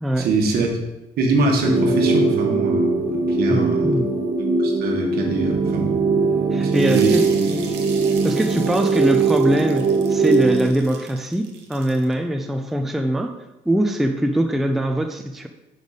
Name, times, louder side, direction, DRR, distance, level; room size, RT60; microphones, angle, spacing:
voice 1, 0.2-0.7 1.2-3.9 4.6-6.0 6.6-7.2, right 3 dB, 65° right, 1 dB, 1.3 m, -23 dB
sound 1, 1.6-10.7, right 4 dB, 45° right, 1.3 m, -20 dB
voice 2, 3.5-4.1 6.5-7.7 8.2-13.4 13.7-15.5, right 1 dB, ahead, 5 dB, 0.4 m, -22 dB
sound 2, 6.7-12.1, right 6 dB, 80° right, 0.9 m, -39 dB
5.3 x 3.9 x 4.9 m, 0.98 s
cardioid pair, 110°, 17 cm